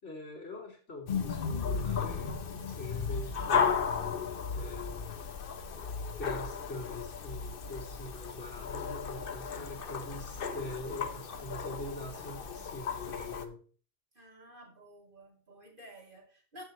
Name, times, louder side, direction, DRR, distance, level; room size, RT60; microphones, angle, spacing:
voice 1, 0.0-3.7 4.5-5.1 6.2-13.6, left 2 dB, 80° left, -1 dB, 3.4 m, -43 dB
sound 1, 1.1-13.5, left 6 dB, 55° left, 1.0 m, -35 dB
voice 2, 14.1-16.6, equal, 45° right, -1 dB, 3.3 m, -52 dB
14.5 x 7.5 x 3.2 m, 0.40 s
omnidirectional pair, 1.2 m